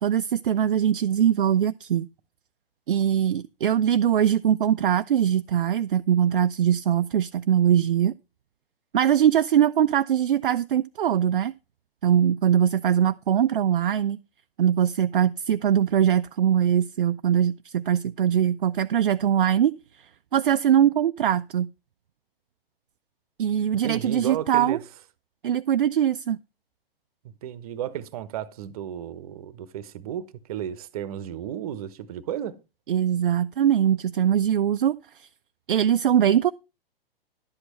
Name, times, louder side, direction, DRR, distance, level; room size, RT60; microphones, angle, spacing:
voice 1, 0.0-2.1 2.9-8.1 8.9-11.5 12.0-14.2 14.6-19.8 20.3-21.7 23.4-24.8 25.4-26.4 32.9-35.3 35.7-36.5, right 9 dB, 60° right, 0.4 m, -22 dB
voice 2, 23.8-24.8 27.4-32.6, right 10 dB, 40° right, 0.9 m, -33 dB
11.5 x 8.0 x 4.3 m
figure-of-eight pair, 115°, 30 cm